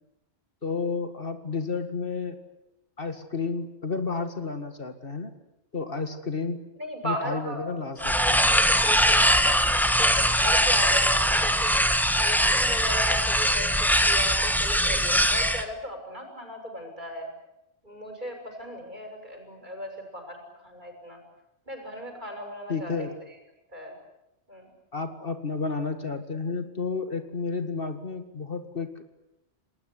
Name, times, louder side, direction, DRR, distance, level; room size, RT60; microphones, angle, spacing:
voice 1, 0.6-2.4 3.0-5.3 5.7-6.6 7.0-8.1 22.7-23.1 24.9-29.0, left 4 dB, 55° left, 8 dB, 2.2 m, -31 dB
voice 2, 6.8-7.6 8.0-11.7 12.2-13.7 14.1-17.3 17.8-21.2 21.7-22.9 23.7-24.0 24.5-24.7, equal, 45° right, 4 dB, 6.9 m, -36 dB
sound 1, 8.0-15.6, equal, ahead, 1.6 m, -22 dB
29.5 x 20.0 x 9.8 m, 0.90 s
omnidirectional pair, 1.1 m